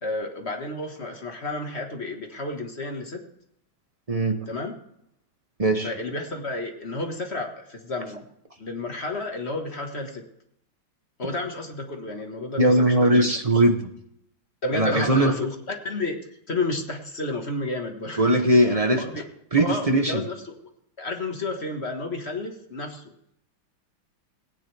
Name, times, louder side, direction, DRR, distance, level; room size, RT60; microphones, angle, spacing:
voice 1, 0.0-3.2 4.5-4.8 5.8-8.3 8.6-10.2 11.2-13.4 14.6-18.2 18.5-18.7 19.0-19.2 19.6-20.5 21.0-23.0, left 2 dB, 35° left, 3 dB, 1.6 m, -31 dB
voice 2, 4.1-4.5 5.6-5.9 12.6-13.9 14.7-15.4 18.2-19.0 19.5-20.3, right 1 dB, 30° right, 5 dB, 0.6 m, -20 dB
18.0 x 10.0 x 3.4 m, 0.74 s
omnidirectional pair, 2.2 m